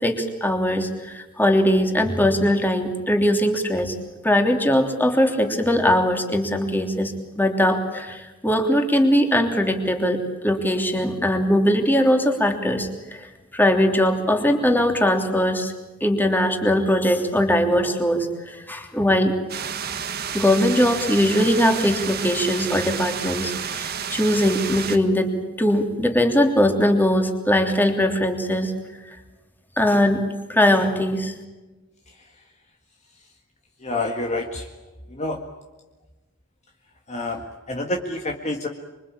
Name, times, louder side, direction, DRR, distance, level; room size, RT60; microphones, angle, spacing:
voice 1, 0.0-3.9 4.2-15.7 16.0-19.3 20.3-25.3 25.6-28.7 29.8-30.2 30.5-31.3, left 1 dB, 10° left, 4 dB, 3.2 m, -20 dB
sound 1, 19.5-25.0, right 7 dB, 50° right, 1.8 m, -30 dB
voice 2, 33.8-34.6 35.2-35.4 37.1-37.4 37.7-38.7, left 2 dB, 35° left, 2 dB, 1.9 m, -27 dB
26.5 x 24.5 x 8.7 m, 1.1 s
head